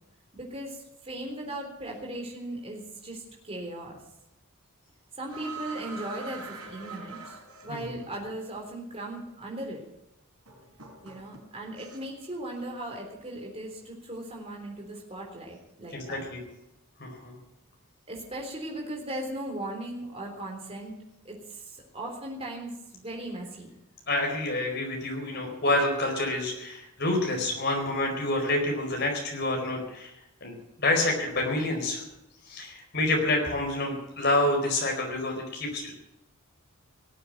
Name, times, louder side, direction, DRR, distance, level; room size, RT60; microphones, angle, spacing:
voice 1, 0.3-4.0 5.2-9.8 11.0-16.2 18.1-20.9 21.3-23.7, right 1 dB, 25° right, -1 dB, 3.6 m, -38 dB
sound 1, 5.3-8.1 9.2-9.3 10.5-12.3 12.5-12.9, right 4 dB, 90° right, 4.2 m, -43 dB
voice 2, 15.9-16.4 17.0-17.4 24.1-30.1 30.4-32.0 32.5-35.9, left 2 dB, 50° left, 1 dB, 4.7 m, -28 dB
18.5 x 7.9 x 9.2 m, 0.87 s
head